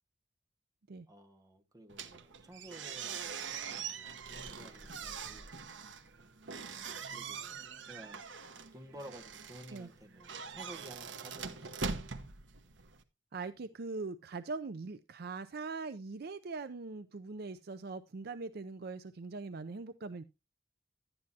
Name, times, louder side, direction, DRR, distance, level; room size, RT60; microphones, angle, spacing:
voice 1, 1.1-5.5 6.6-8.3 8.7-12.3, right 1 dB, 20° right, 1.4 m, -53 dB
sound 1, 1.9-13.0, right 5 dB, 85° right, 1.1 m, -43 dB
Guitar, 4.6-8.3, left 1 dB, 25° left, 3.1 m, -70 dB
voice 2, 13.3-20.2, right 3 dB, 55° right, 0.5 m, -41 dB
11.5 x 9.7 x 2.8 m
head